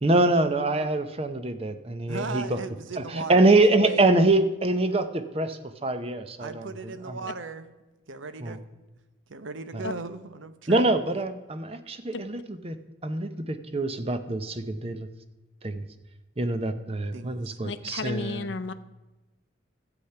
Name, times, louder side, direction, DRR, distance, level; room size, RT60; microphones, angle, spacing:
voice 1, 0.0-2.6 3.1-6.7 7.1-7.2 8.4-8.6 9.7-9.8 10.7-12.8 13.0-15.1 15.6-15.9 16.4-18.5, right 2 dB, 30° right, 10 dB, 0.7 m, -24 dB
voice 2, 2.1-4.0 6.4-7.7 8.1-8.7 9.3-10.9 17.1-17.6, right 3 dB, 85° right, 12 dB, 0.8 m, -37 dB
voice 3, 17.6-18.7, left 3 dB, 65° left, 13 dB, 0.6 m, -33 dB
12.0 x 8.1 x 5.7 m, 1.1 s
head